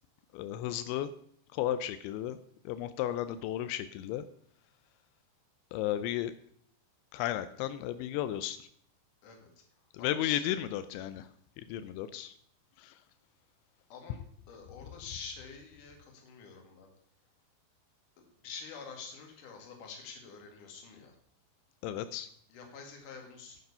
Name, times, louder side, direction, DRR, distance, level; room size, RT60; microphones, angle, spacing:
voice 1, 0.3-1.1 1.5-2.4 2.7-4.3 5.7-6.3 7.1-8.7 9.9-11.3 11.6-12.3 12.8-12.9 21.8-22.3, left 12 dB, 85° left, 12 dB, 2.9 m, -34 dB
voice 2, 9.2-10.6 13.9-14.2 14.5-16.9 18.2-21.2 22.5-23.6, left 5 dB, 55° left, 2 dB, 3.1 m, -47 dB
9.4 x 9.3 x 5.5 m, 0.64 s
omnidirectional pair, 5.2 m